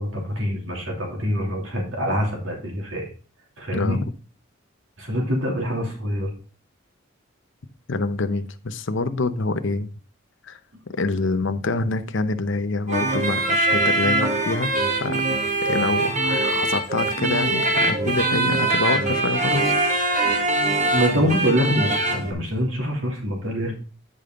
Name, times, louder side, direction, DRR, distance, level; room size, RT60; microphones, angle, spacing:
voice 1, 0.0-3.1 3.6-4.0 5.0-6.3 20.9-23.7, equal, 70° right, 0 dB, 2.8 m, -25 dB
voice 2, 7.9-9.9 10.5-10.6 11.0-14.7 15.0-15.2 15.6-19.7, left 3 dB, 60° left, 10 dB, 0.7 m, -26 dB
sound 1, 12.9-22.3, right 2 dB, 35° right, 1.6 m, -22 dB
9.8 x 5.2 x 3.8 m, 0.38 s
head